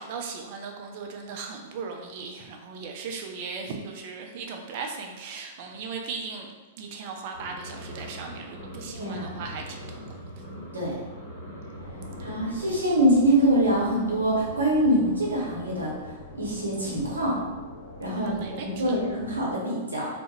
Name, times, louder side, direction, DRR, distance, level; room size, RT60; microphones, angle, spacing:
voice 1, 0.0-6.5 6.8-10.2 18.1-19.0, right 5 dB, 50° right, 3 dB, 0.4 m, -37 dB
sound 1, 7.3-12.7, equal, 70° left, 0.8 m, -41 dB
voice 2, 8.9-9.4 10.7-11.0 12.2-15.9 16.3-17.4 18.0-20.1, right 1 dB, 90° right, -4 dB, 0.8 m, -24 dB
sound 2, 11.7-19.6, left 1 dB, 55° left, 1.2 m, -43 dB
2.3 x 2.1 x 3.0 m, 1.2 s
hypercardioid pair, 105°, 0 cm